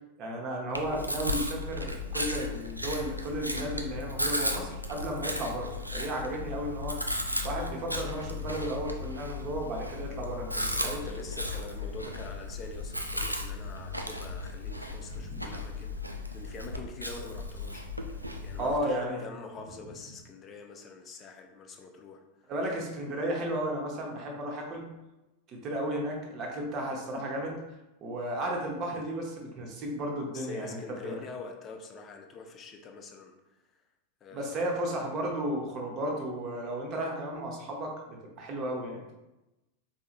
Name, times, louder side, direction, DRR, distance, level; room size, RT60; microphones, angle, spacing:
voice 1, 0.2-7.0 7.4-11.0 15.2-15.5 18.6-19.2 22.5-24.9 25.5-27.5 28.0-31.2 34.3-39.1, right 1 dB, 35° right, 0 dB, 0.9 m, -34 dB
Chewing mastication, 0.7-18.8, left 1 dB, 90° right, 0.3 m, -35 dB
voice 2, 10.8-22.2 30.3-33.3 34.2-34.7, left 4 dB, 25° left, 4 dB, 0.5 m, -45 dB
4.7 x 2.7 x 2.5 m, 1.0 s
figure-of-eight pair, 90°, 0 cm